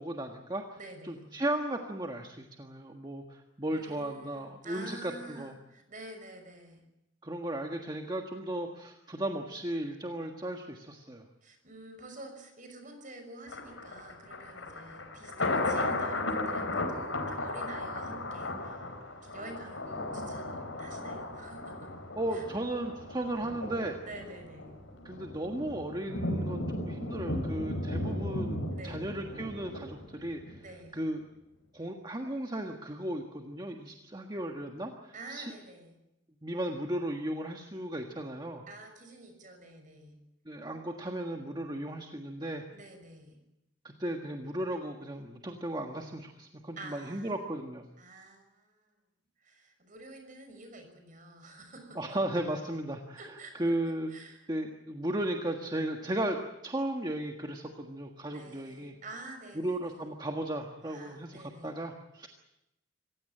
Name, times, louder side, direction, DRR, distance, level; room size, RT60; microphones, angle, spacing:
voice 1, 0.0-0.6 1.0-5.5 7.2-11.2 22.2-24.0 25.0-30.6 30.9-31.2 31.7-35.5 36.4-38.6 40.4-42.6 43.8-47.8 51.9-53.2 53.5-54.1 54.5-56.4 56.6-58.9 59.6-62.3, right 1 dB, 20° right, 3 dB, 1.5 m, -35 dB
voice 2, 0.8-1.2 3.7-6.8 11.4-18.9 19.2-21.9 22.3-22.5 24.0-24.7 28.7-29.2 30.6-31.0 35.1-35.9 38.7-40.2 42.7-43.4 46.8-47.3 48.0-48.9 49.4-52.0 53.2-53.8 54.1-54.5 58.3-60.1 60.8-61.7, right 2 dB, 45° right, 6 dB, 6.0 m, -48 dB
Thunder, 13.5-30.6 31.0-31.1, left 2 dB, 85° left, 4.2 m, -36 dB
26.5 x 16.0 x 8.9 m, 0.89 s
head